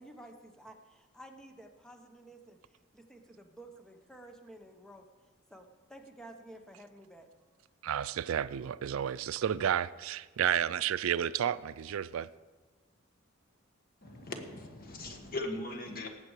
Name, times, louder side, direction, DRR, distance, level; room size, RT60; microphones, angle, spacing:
voice 1, 0.0-7.6, right 1 dB, 5° left, 0.9 m, -53 dB
voice 2, 7.8-12.3, right 9 dB, 80° right, 0.4 m, -31 dB
voice 3, 14.0-16.1, left 2 dB, 45° left, 1.5 m, -39 dB
19.0 x 7.6 x 4.8 m
head